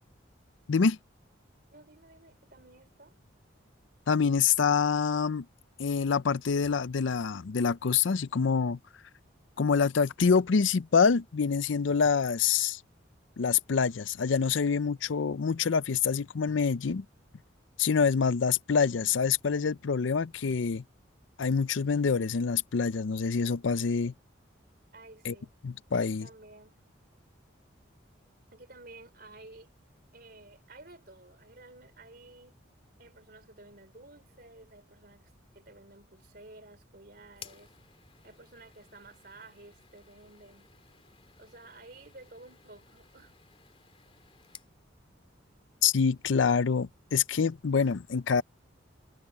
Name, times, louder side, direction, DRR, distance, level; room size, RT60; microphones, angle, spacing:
voice 1, 1.7-3.2 24.9-25.6 25.9-26.8 28.5-29.7 30.1-32.6 33.0-37.8 38.2-40.7 41.4-43.4, right 2 dB, 50° right, 3.8 m, -53 dB
voice 2, 4.1-5.5 5.8-8.8 9.6-12.8 13.4-17.0 17.8-20.8 21.4-24.1 25.2-25.3 25.6-26.3 45.8-48.4, left 5 dB, 70° left, 0.5 m, -26 dB
sound 1, 37.3-44.7, left 7 dB, 30° left, 2.8 m, -56 dB
head